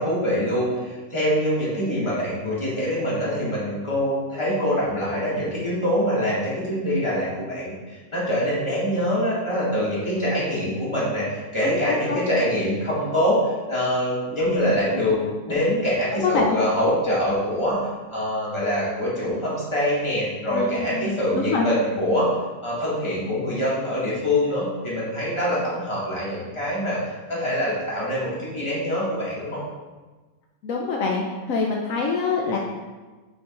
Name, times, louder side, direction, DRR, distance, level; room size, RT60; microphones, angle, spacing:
voice 1, 0.0-17.8 18.1-22.3 22.6-29.6, equal, 20° left, -8 dB, 1.9 m, -24 dB
voice 2, 11.6-12.2 16.2-16.6 20.5-21.7 30.6-32.6, left 4 dB, 70° left, -1 dB, 1.1 m, -25 dB
9.0 x 5.0 x 2.5 m, 1.3 s
omnidirectional pair, 1.5 m